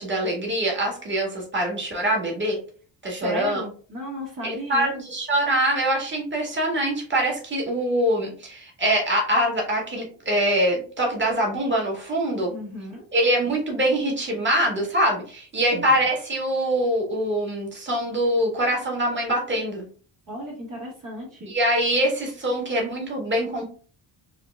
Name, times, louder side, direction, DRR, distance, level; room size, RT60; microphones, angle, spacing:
voice 1, 0.0-2.6 3.0-3.6 4.4-12.5 13.1-19.8 21.5-23.7, right 1 dB, 25° right, -1 dB, 1.7 m, -24 dB
voice 2, 3.2-4.9 12.5-13.0 15.7-15.9 20.3-21.6, equal, 45° right, -4 dB, 1.5 m, -34 dB
5.6 x 2.4 x 2.2 m, 0.42 s
cardioid pair, 65°, 46 cm